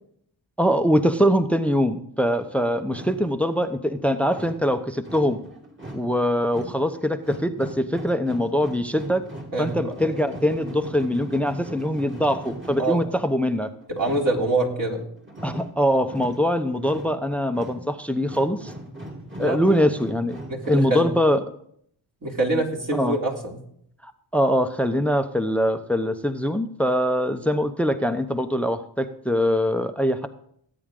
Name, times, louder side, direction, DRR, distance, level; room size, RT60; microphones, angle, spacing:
voice 1, 0.6-5.4 5.9-9.2 9.6-13.7 15.4-18.7 19.4-20.4 20.7-21.4 22.9-23.2 24.0-30.3, equal, 5° left, 9 dB, 0.8 m, -23 dB
sound 1, 2.4-21.0, right 1 dB, 25° right, 2.6 m, -40 dB
voice 2, 9.5-9.9 12.8-13.0 13.9-15.0 19.4-19.9 20.5-21.1 22.2-23.6, right 2 dB, 45° right, -2 dB, 3.4 m, -25 dB
18.5 x 8.6 x 3.8 m, 0.67 s
cardioid pair, 65°, 44 cm